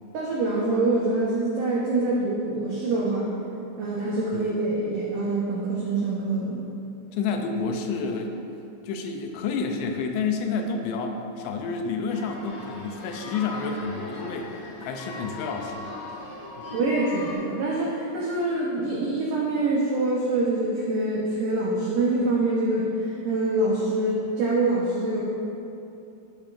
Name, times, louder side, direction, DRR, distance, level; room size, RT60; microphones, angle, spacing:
voice 1, 0.1-3.3 3.8-6.7 16.7-25.2, right 2 dB, 85° right, -5 dB, 1.8 m, -25 dB
voice 2, 7.1-8.3 8.8-15.9 16.6-16.7, left 4 dB, 80° left, 3 dB, 2.7 m, -29 dB
sound 1, 12.1-17.3, left 2 dB, 50° left, 3.2 m, -39 dB
12.0 x 8.5 x 2.5 m, 2.7 s
omnidirectional pair, 5.2 m